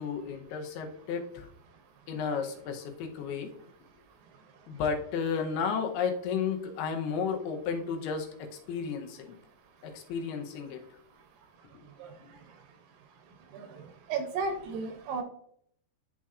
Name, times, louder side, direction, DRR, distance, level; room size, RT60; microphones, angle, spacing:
voice 1, 0.0-1.5 2.1-3.5 4.7-9.4 9.8-10.8 11.7-11.8 12.2-12.3, left 6 dB, 85° left, 4 dB, 2.8 m, -33 dB
voice 2, 14.1-15.2, right 4 dB, 80° right, 6 dB, 2.3 m, -32 dB
11.0 x 4.2 x 2.4 m, 0.67 s
omnidirectional pair, 4.5 m